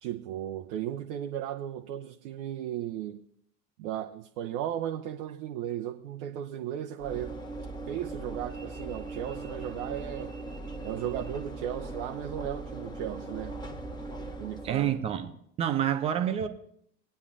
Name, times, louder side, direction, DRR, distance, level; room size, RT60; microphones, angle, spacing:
voice 1, 0.0-3.2 3.8-7.4 7.9-10.4 10.8-13.6 14.4-15.0, right 11 dB, 45° right, 0.7 m, -35 dB
Train / Engine / Alarm, 7.0-15.2, right 2 dB, 10° left, 1.2 m, -39 dB
voice 2, 14.6-15.3 15.6-16.5, right 10 dB, 15° right, 0.3 m, -27 dB
20.0 x 9.4 x 2.5 m
figure-of-eight pair, 80°, 50 cm